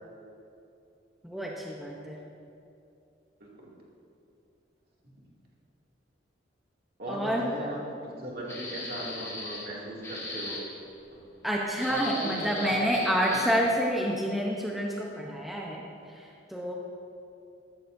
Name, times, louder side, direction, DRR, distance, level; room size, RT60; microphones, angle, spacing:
voice 1, 1.2-2.2 7.1-7.7 11.4-16.7, equal, ahead, -3 dB, 0.8 m, -29 dB
voice 2, 7.0-10.6 11.1-11.2 11.9-13.0, right 1 dB, 55° right, -4 dB, 2.4 m, -38 dB
sound 1, 8.5-9.7 10.0-10.6 11.7-13.6, left 2 dB, 15° left, 1.4 m, -38 dB
13.5 x 13.0 x 2.7 m, 2.7 s
head